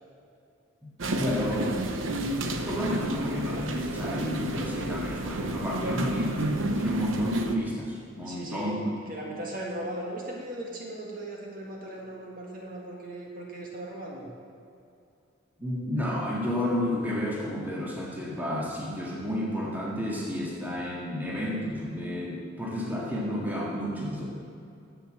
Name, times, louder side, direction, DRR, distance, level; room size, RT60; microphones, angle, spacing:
voice 1, 0.8-1.8 2.6-6.4 6.8-8.8 15.6-24.2, left 1 dB, 10° right, -4 dB, 1.8 m, -31 dB
sound 1, 1.0-7.6, right 1 dB, 85° right, 0.9 m, -31 dB
voice 2, 8.2-8.8 9.1-14.3, right 1 dB, 45° right, -2 dB, 1.9 m, -38 dB
10.5 x 8.1 x 7.6 m, 2.5 s
head